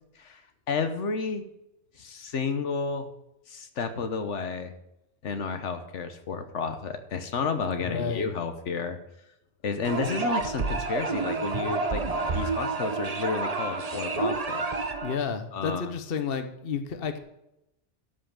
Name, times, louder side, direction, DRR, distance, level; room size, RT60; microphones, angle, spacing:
voice 1, 0.7-1.4 2.0-3.1 3.5-4.7 5.2-9.0 9.6-12.0 12.3-14.7 15.5-15.9, left 5 dB, 75° left, 8 dB, 1.3 m, -31 dB
voice 2, 7.8-8.3 15.0-17.2, left 6 dB, 55° left, 9 dB, 1.1 m, -31 dB
sound 1, 9.8-15.2, right 3 dB, 35° right, 1.0 m, -29 dB
12.5 x 5.7 x 6.7 m, 0.85 s
omnidirectional pair, 1.2 m